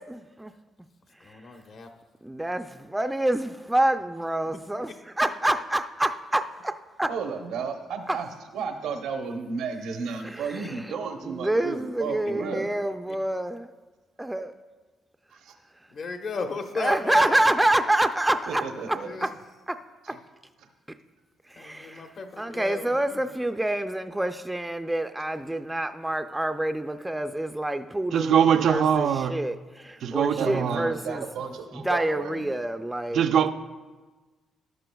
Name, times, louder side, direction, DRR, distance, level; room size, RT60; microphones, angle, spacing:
voice 1, 0.1-0.5 1.2-1.4 2.2-4.9 5.2-7.1 8.1-8.2 10.2-11.0 11.2-13.7 14.2-14.5 16.8-19.3 19.7-19.8 20.1-20.2 21.5-22.1 22.4-31.2 31.7-33.3, right 1 dB, 10° right, 0.4 m, -27 dB
voice 2, 1.2-1.9 15.9-17.3 19.0-19.3 21.5-23.2, left 3 dB, 55° left, 1.0 m, -34 dB
voice 3, 7.1-8.3 8.5-12.7 15.3-15.5 18.5-19.1 30.3-32.5, right 5 dB, 85° right, 0.9 m, -33 dB
voice 4, 28.1-29.3 30.0-30.9 33.1-33.5, right 8 dB, 70° right, 0.4 m, -22 dB
13.5 x 11.0 x 2.3 m
cardioid pair, 90°, 0 cm